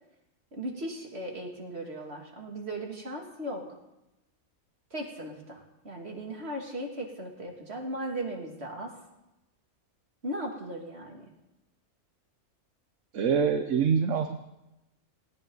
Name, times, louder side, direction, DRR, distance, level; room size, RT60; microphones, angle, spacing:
voice 1, 0.5-3.6 4.9-5.6 5.8-8.9 10.2-11.2, right 1 dB, 50° right, 0 dB, 2.9 m, -37 dB
voice 2, 13.1-14.4, right 6 dB, 70° right, 6 dB, 1.3 m, -25 dB
19.0 x 18.0 x 4.0 m, 0.94 s
omnidirectional pair, 1.3 m